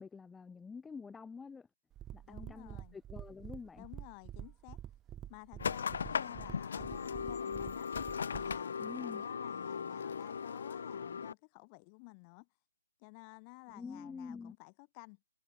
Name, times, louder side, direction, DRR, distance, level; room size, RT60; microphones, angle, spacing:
voice 1, 0.0-1.7 2.1-3.9 8.8-9.2 13.7-14.5, left 5 dB, 5° left, 1.1 m, -47 dB
sound 1, 1.9-8.6, right 11 dB, 15° right, 2.2 m, -48 dB
voice 2, 2.2-3.0 3.8-4.8 5.3-7.9 8.2-12.5 13.0-15.2, left 37 dB, 25° left, 3.2 m, -53 dB
sound 2, 5.6-11.3, left 6 dB, 60° left, 1.2 m, -38 dB
hypercardioid pair, 155°, 0 cm